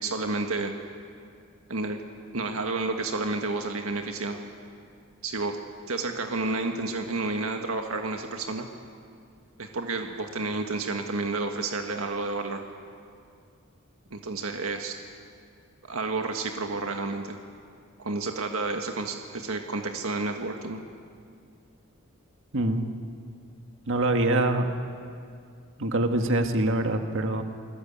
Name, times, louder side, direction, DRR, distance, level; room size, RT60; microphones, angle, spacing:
voice 1, 0.0-0.7 1.7-2.0 2.3-4.4 5.2-5.6 5.9-8.7 9.6-12.6 14.1-15.0 15.9-17.4 18.0-20.8, right 3 dB, 85° right, 4 dB, 1.6 m, -30 dB
voice 2, 22.5-22.9 23.9-24.7 25.8-27.4, right 2 dB, 65° right, 5 dB, 1.8 m, -24 dB
28.5 x 20.0 x 8.7 m, 2.3 s
head